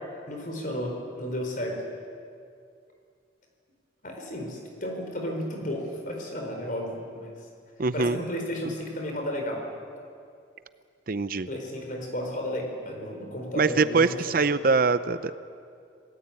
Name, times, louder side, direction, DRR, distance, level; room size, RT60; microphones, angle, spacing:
voice 1, 0.3-1.8 4.0-7.3 7.9-9.6 11.5-14.4, left 1 dB, 45° left, 2 dB, 4.6 m, -33 dB
voice 2, 7.8-8.2 11.1-11.5 13.5-15.4, right 4 dB, 50° right, 13 dB, 0.6 m, -23 dB
27.0 x 18.5 x 8.9 m, 2.4 s
head